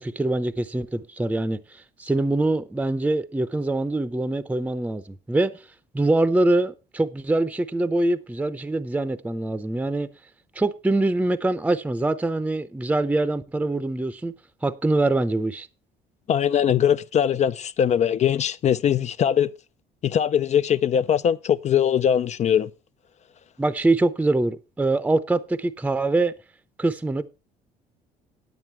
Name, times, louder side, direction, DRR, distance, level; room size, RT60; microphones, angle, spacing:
voice 1, 0.0-5.5 5.9-10.1 10.5-14.3 14.6-15.7 23.6-26.3 26.8-27.2, right 2 dB, 10° right, 0.6 m, -24 dB
voice 2, 16.3-19.5 20.0-22.7, left 9 dB, 40° left, 0.4 m, -21 dB
9.3 x 9.2 x 4.5 m
cardioid pair, 110°, 17 cm